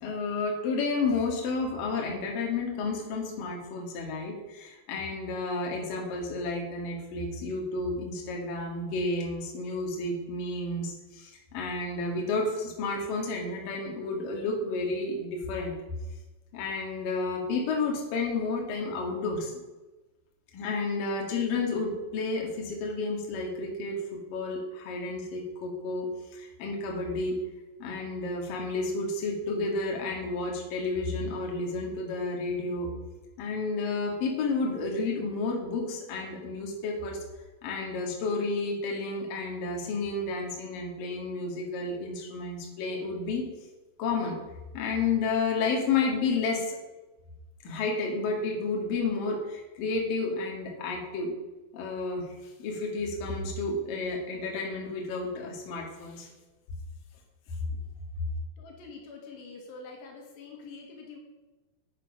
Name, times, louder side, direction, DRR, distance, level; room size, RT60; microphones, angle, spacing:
voice 1, 0.0-15.7 16.5-19.5 20.5-27.4 27.8-32.9 33.4-37.2 37.6-43.5 44.0-44.4 44.7-46.8 47.6-51.3 51.7-52.3 52.6-56.3, left 3 dB, 60° left, 0 dB, 3.5 m, -31 dB
voice 2, 58.6-61.2, left 4 dB, 80° left, 1 dB, 3.9 m, -45 dB
10.5 x 9.3 x 5.3 m, 1.1 s
omnidirectional pair, 4.8 m